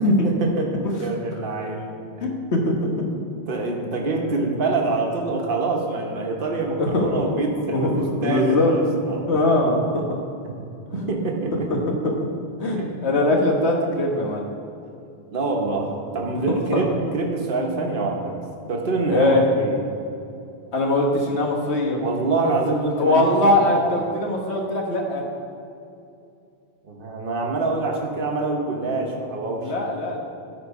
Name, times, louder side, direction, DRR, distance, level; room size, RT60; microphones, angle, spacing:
voice 1, 0.0-2.0 3.5-9.3 10.4-10.6 10.9-11.5 12.7-12.9 15.3-18.4 18.7-19.8 22.0-23.3 26.8-29.8, right 3 dB, 55° right, 0 dB, 1.3 m, -25 dB
voice 2, 2.2-3.0 6.8-8.7 9.3-10.2 10.9-11.1 11.5-11.8 12.0-12.1 12.6-14.5 16.5-16.8 19.1-19.4 20.7-22.0 22.9-25.2 29.6-30.2, left 2 dB, 75° left, 0 dB, 1.5 m, -21 dB
13.0 x 4.4 x 4.8 m, 2.6 s
omnidirectional pair, 1.1 m